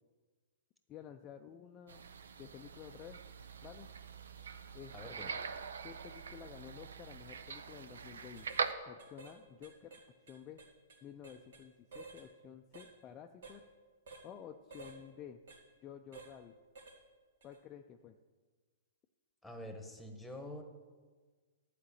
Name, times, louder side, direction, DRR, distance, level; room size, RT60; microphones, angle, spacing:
voice 1, 0.9-2.0 2.4-3.2 3.6-3.9 4.7-4.9 5.8-8.5 8.9-9.9 10.2-10.6 11.0-13.6 14.2-15.4 15.8-16.5 17.4-18.2, left 9 dB, 25° left, 4 dB, 0.4 m, -51 dB
sound 1, 1.9-8.7, right 6 dB, 90° right, 0.7 m, -43 dB
voice 2, 4.9-5.3 19.4-20.6, left 1 dB, ahead, 4 dB, 1.3 m, -46 dB
sound 2, 7.8-7.9 8.4-8.6 9.0-9.4 9.6-11.6 11.9-12.3 12.7-12.9 13.4-13.6 14.1-14.3 14.7-15.0 15.5-15.6 16.1-16.3 16.8-17.0 17.4-17.6, right 3 dB, 70° right, 2.3 m, -53 dB
11.5 x 5.1 x 8.5 m, 1.4 s
hypercardioid pair, 150°, 0 cm